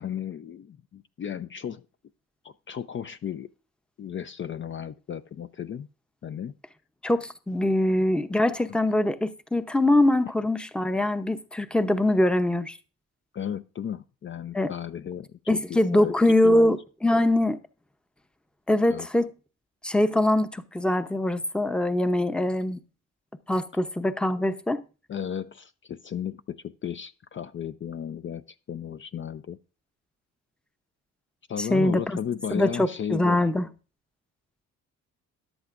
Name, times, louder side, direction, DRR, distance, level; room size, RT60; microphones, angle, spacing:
voice 1, 0.0-1.8 2.4-3.5 4.0-5.9 6.2-6.5 8.4-8.8 13.3-16.1 16.4-16.7 18.9-19.1 24.4-24.5 25.1-29.6 31.5-33.5, left 9 dB, 40° left, 0.5 m, -35 dB
voice 2, 7.0-12.8 14.5-14.7 15.5-17.6 18.7-19.3 19.8-22.8 23.5-24.8 31.7-32.2 32.5-33.7, left 1 dB, 5° left, 0.7 m, -23 dB
14.0 x 10.5 x 2.5 m
cardioid pair, 90°, 30 cm